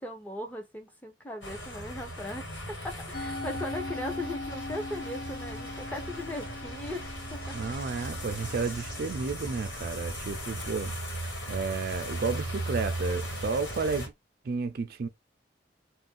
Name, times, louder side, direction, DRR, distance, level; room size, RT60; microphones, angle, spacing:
voice 1, 0.0-7.0 7.3-7.5, left 1 dB, 10° left, 0.6 m, -38 dB
sound 1, 1.4-14.1, right 1 dB, 80° left, 1.6 m, -37 dB
Musical instrument, 3.1-9.5, left 3 dB, 55° left, 0.8 m, -41 dB
voice 2, 7.5-10.9 11.5-14.1 14.4-15.1, right 4 dB, 55° right, 0.4 m, -32 dB
2.5 x 2.2 x 3.5 m
head